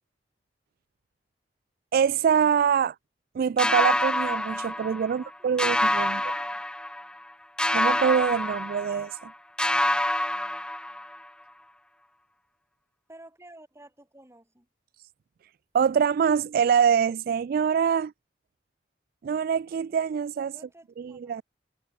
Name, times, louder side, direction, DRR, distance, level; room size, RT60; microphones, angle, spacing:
voice 1, 1.9-3.0 3.4-6.2 7.7-9.3 15.7-18.1 19.2-20.5 21.0-21.4, right 7 dB, 55° right, 0.3 m, -24 dB
sound 1, 3.6-5.3 5.6-7.2 7.6-9.3 9.6-11.3, left 1 dB, 5° left, 0.9 m, -27 dB
voice 2, 5.1-6.6 13.1-14.7 20.5-21.4, right 1 dB, 15° right, 6.8 m, -53 dB
head